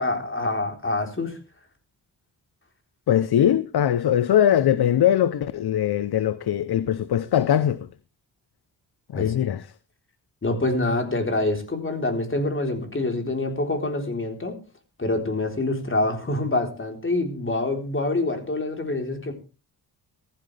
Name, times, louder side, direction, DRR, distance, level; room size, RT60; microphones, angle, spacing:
voice 1, 0.0-1.4 9.1-9.3 10.4-14.6 15.0-19.3, left 2 dB, 30° left, 3.9 m, -26 dB
voice 2, 3.1-7.9 9.1-9.7, left 10 dB, 65° left, 0.8 m, -21 dB
16.0 x 14.5 x 3.4 m
cardioid pair, 90°, 42 cm